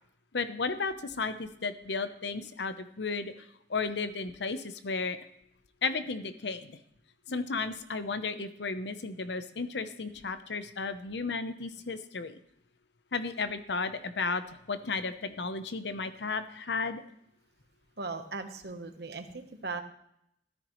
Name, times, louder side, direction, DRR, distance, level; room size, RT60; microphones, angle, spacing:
voice 1, 0.3-3.3 3.7-5.2 5.8-6.8 7.3-12.4 13.1-14.4 14.7-17.0, left 4 dB, 75° left, 11 dB, 0.8 m, -34 dB
voice 2, 18.0-19.8, right 3 dB, 65° right, 7 dB, 1.1 m, -38 dB
14.5 x 13.0 x 3.2 m, 0.74 s
head